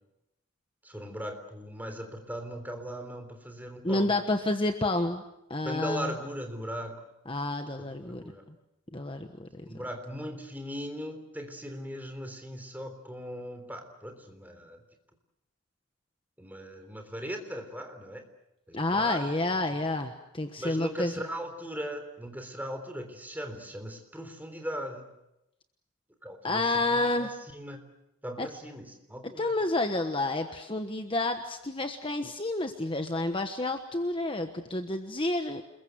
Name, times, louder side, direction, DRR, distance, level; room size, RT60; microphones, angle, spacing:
voice 1, 0.8-4.2 5.6-7.0 7.8-8.4 9.6-14.8 16.4-18.2 18.7-19.3 20.6-25.1 26.2-27.8 28.2-29.5, equal, 10° right, 6 dB, 3.5 m, -39 dB
voice 2, 3.8-5.2 5.5-6.1 7.3-8.2 8.9-9.7 18.7-21.1 26.4-27.3 28.4-28.5 29.4-35.6, left 2 dB, 25° left, 6 dB, 1.2 m, -29 dB
28.5 x 22.0 x 8.0 m, 0.86 s
head